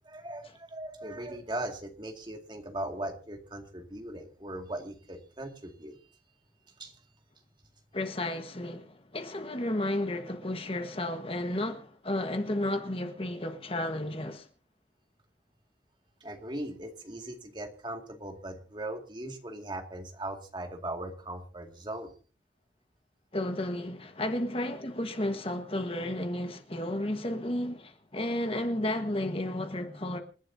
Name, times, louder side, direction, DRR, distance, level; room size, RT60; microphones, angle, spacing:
voice 1, 0.0-6.0 6.8-7.0 16.2-22.1, right 1 dB, 25° right, 2.2 m, -39 dB
voice 2, 7.9-14.5 23.3-30.2, left 1 dB, 30° left, 1.5 m, -32 dB
28.0 x 11.0 x 2.8 m
head